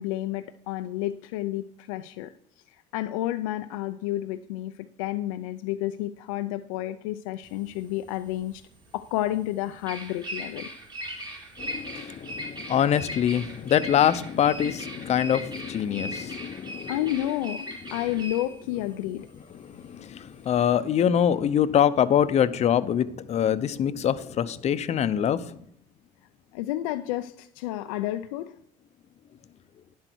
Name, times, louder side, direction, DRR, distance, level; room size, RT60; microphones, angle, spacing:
voice 1, 0.0-2.3 2.9-4.7 5.0-8.6 8.9-10.7 16.9-19.3 19.7-19.8 26.5-28.5, left 14 dB, 90° left, 0.5 m, -30 dB
Bird vocalization bird call bird song, 7.5-20.7, right 1 dB, 25° right, 2.5 m, -39 dB
voice 2, 11.6-17.0 19.5-25.4, left 9 dB, 45° left, 0.7 m, -24 dB
10.5 x 7.7 x 4.6 m
supercardioid pair, 90°, 16 cm